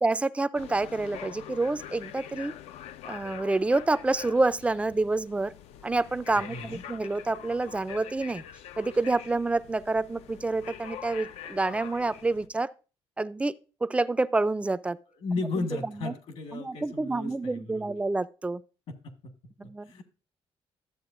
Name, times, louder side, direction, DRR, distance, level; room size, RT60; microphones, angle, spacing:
voice 1, 0.0-2.6 3.0-5.5 5.8-8.4 8.8-12.7 13.2-15.0 15.6-16.1 16.5-18.6 19.6-20.0, right 2 dB, 10° right, 0.3 m, -28 dB
sound 1, 0.5-12.5, left 10 dB, 90° left, 0.5 m, -45 dB
voice 2, 6.5-6.8 15.2-17.9 19.2-19.3 19.8-20.0, left 3 dB, 65° left, 1.5 m, -34 dB
12.5 x 7.6 x 2.5 m
cardioid pair, 130°, 11 cm